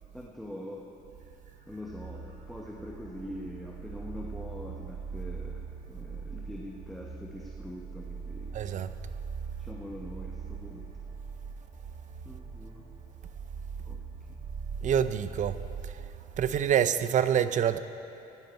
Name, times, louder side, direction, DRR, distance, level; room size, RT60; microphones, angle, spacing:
voice 1, 0.1-0.9 1.7-8.5 9.6-10.9 12.2-12.8 13.8-14.0 14.3-14.4, left 1 dB, ahead, 1.0 m, -43 dB
sound 1, 1.1-16.7, right 5 dB, 65° right, 2.0 m, -41 dB
voice 2, 8.5-8.9 14.8-15.6 15.8-16.0 16.4-17.8, right 9 dB, 50° right, 0.5 m, -26 dB
16.5 x 10.5 x 4.4 m
cardioid pair, 110°, 17 cm